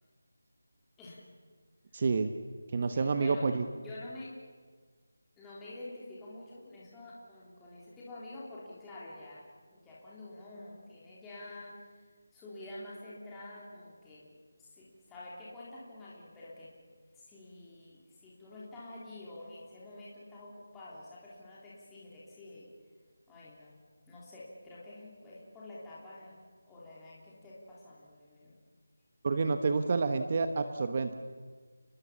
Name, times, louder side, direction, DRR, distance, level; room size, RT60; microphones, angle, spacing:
voice 1, 1.9-2.3 2.7-3.6 29.2-31.1, right 4 dB, 30° right, 8 dB, 1.0 m, -29 dB
voice 2, 2.9-3.4 3.7-4.3 5.4-12.1 12.3-14.3 14.6-16.7 17.1-22.7 23.3-23.8 24.1-28.5, left 2 dB, 5° left, -8 dB, 3.2 m, -48 dB
30.0 x 21.5 x 7.3 m, 1.5 s
figure-of-eight pair, 175°, 0 cm